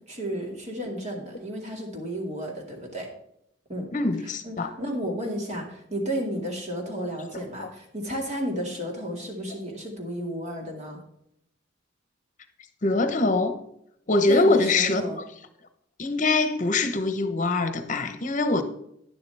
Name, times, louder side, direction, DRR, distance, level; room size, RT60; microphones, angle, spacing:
voice 1, 0.1-3.1 3.7-3.9 4.4-11.0 14.3-15.2, equal, 35° right, 2.3 m, -32 dB
voice 2, 3.9-4.7 6.9-7.1 7.6-7.7 12.8-13.6 14.1-15.0 16.0-18.6, left 3 dB, 40° left, 1.0 m, -23 dB
11.5 x 10.5 x 3.5 m
head